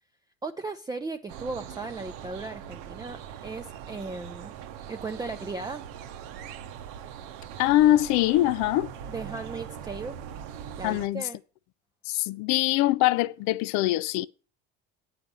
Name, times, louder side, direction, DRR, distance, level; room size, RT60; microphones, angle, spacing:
voice 1, 0.4-4.5 4.9-5.8 9.1-10.2 10.8-11.4, right 3 dB, 15° right, 0.6 m, -36 dB
sound 1, 1.3-11.1, right 9 dB, 75° right, 0.9 m, -41 dB
voice 2, 7.6-8.9 10.8-11.2 12.1-14.3, left 15 dB, 65° left, 0.5 m, -23 dB
8.7 x 5.0 x 6.8 m
hypercardioid pair, 75°, 31 cm